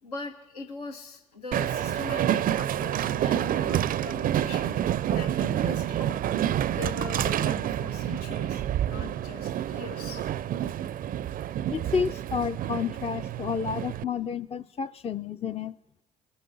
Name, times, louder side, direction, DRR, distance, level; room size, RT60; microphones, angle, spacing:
voice 1, 0.0-4.8 5.1-6.1 6.7-10.3 13.6-13.7, left 4 dB, 90° left, 3 dB, 1.1 m, -41 dB
Train, 1.5-14.0, right 11 dB, 45° right, 0.4 m, -28 dB
voice 2, 11.7-15.7, left 6 dB, 30° left, 11 dB, 0.5 m, -30 dB
23.5 x 8.1 x 4.0 m, 1.0 s
hypercardioid pair, 50°, 19 cm